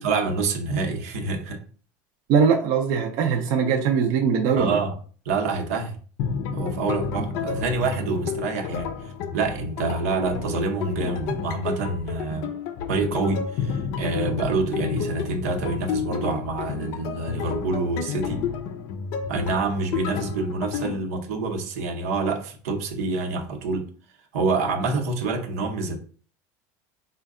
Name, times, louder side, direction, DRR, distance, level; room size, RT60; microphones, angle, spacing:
voice 1, 0.0-1.6 4.6-4.9 5.2-6.0 6.5-12.5 12.9-18.4 19.3-23.9 24.3-26.0, right 3 dB, 85° right, 0.9 m, -27 dB
voice 2, 2.3-4.8, right 6 dB, 50° right, 0.5 m, -21 dB
sound 1, 6.2-21.0, left 6 dB, 45° left, 0.5 m, -31 dB
4.4 x 2.2 x 3.6 m
cardioid pair, 165°, 8 cm